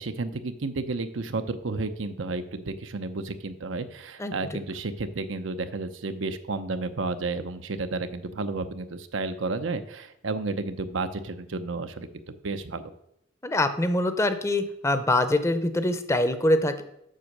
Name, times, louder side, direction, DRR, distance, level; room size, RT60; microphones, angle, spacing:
voice 1, 0.0-12.1 12.4-12.9, right 3 dB, 85° right, 9 dB, 0.8 m, -32 dB
voice 2, 13.4-16.8, left 1 dB, 15° left, 10 dB, 0.6 m, -24 dB
7.6 x 6.1 x 6.6 m, 0.78 s
head